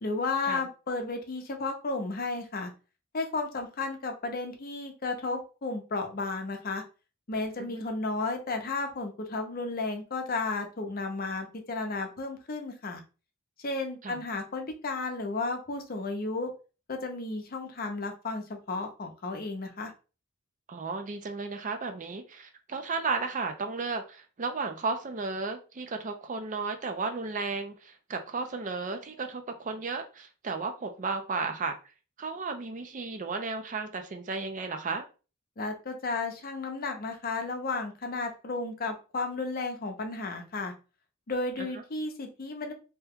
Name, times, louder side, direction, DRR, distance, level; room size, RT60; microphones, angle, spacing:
voice 1, 0.0-2.7 3.1-6.8 7.3-13.0 13.6-16.5 16.9-19.9 35.6-40.7 41.3-42.7, left 3 dB, 45° left, 5 dB, 0.6 m, -33 dB
voice 2, 20.7-31.8 32.2-35.1, right 4 dB, 40° right, 6 dB, 0.5 m, -34 dB
2.8 x 2.2 x 3.5 m, 0.33 s
head